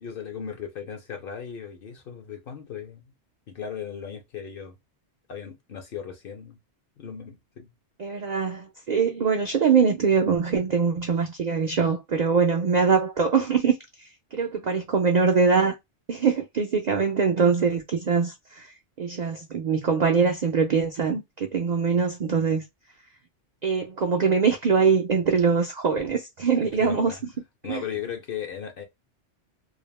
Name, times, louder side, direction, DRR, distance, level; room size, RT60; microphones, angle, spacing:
voice 1, 0.0-3.1 3.5-4.8 5.3-6.6 7.0-7.7 26.6-27.2 27.6-28.8, left 8 dB, 60° left, 0.7 m, -37 dB
voice 2, 8.0-15.7 16.1-18.7 19.0-22.6 23.6-27.2 27.7-27.8, right 5 dB, 65° right, 0.4 m, -23 dB
2.3 x 2.0 x 3.1 m
omnidirectional pair, 1.3 m